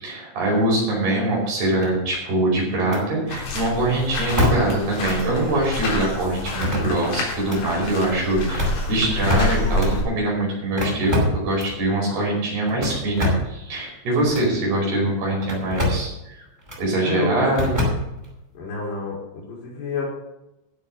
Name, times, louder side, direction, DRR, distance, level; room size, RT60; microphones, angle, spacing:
voice 1, 0.0-16.4 16.8-17.7, right 2 dB, 55° right, -3 dB, 6.8 m, -23 dB
sound 1, 1.8-2.3 2.9-3.0 4.4-4.8 5.0-5.1 6.4-7.1 7.4-7.6 8.4-9.9 10.8-11.8 12.7-13.6 14.3-14.5 15.4-16.1 16.7-16.8 17.5-18.4, left 1 dB, 10° right, 4.7 m, -25 dB
sound 2, 3.3-10.0, left 2 dB, 85° left, 6.4 m, -28 dB
voice 2, 11.8-12.2 17.0-17.5 18.5-20.0, left 3 dB, 60° left, -4 dB, 5.5 m, -29 dB
14.5 x 7.6 x 6.5 m, 0.89 s
omnidirectional pair, 5.7 m